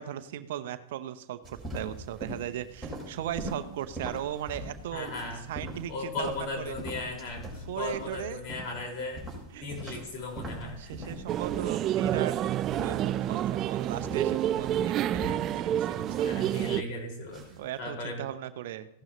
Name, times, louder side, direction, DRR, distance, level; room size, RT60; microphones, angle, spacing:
voice 1, 0.0-5.1 5.5-6.8 7.6-8.4 9.5-10.0 10.8-12.4 12.8-16.3 17.6-18.9, right 11 dB, 65° right, 11 dB, 0.8 m, -37 dB
sound 1, 1.4-17.7, right 1 dB, ahead, 5.0 m, -42 dB
voice 2, 4.9-5.4 5.9-9.2 9.6-11.1 16.2-17.4 17.8-18.2, left 2 dB, 50° left, 0 dB, 5.1 m, -37 dB
sound 2, 11.3-16.8, right 11 dB, 35° right, 0.3 m, -28 dB
16.0 x 12.0 x 3.2 m, 0.79 s
hypercardioid pair, 110°, 0 cm